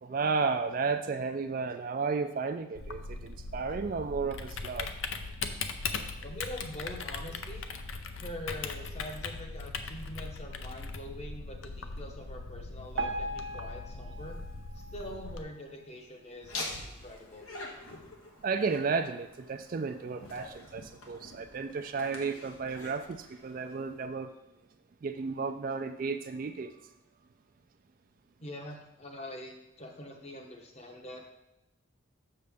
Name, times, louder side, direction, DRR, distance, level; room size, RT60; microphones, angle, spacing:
voice 1, 0.0-4.9 18.4-24.3 25.0-26.7, right 4 dB, 40° right, 8 dB, 0.3 m, -33 dB
Typing, 2.7-15.4, left 4 dB, 70° left, 0.5 m, -39 dB
voice 2, 6.2-7.6 8.2-14.4 14.9-17.5 28.4-31.2, left 1 dB, 30° left, 2 dB, 0.8 m, -44 dB
Piano, 13.0-16.1 16.6-16.7 17.0-17.1 17.9-18.0 18.5-18.6, right 2 dB, 65° right, 0.7 m, -39 dB
Laughter, 16.4-24.1, left 2 dB, 90° left, 1.3 m, -45 dB
6.7 x 6.6 x 3.5 m, 0.91 s
head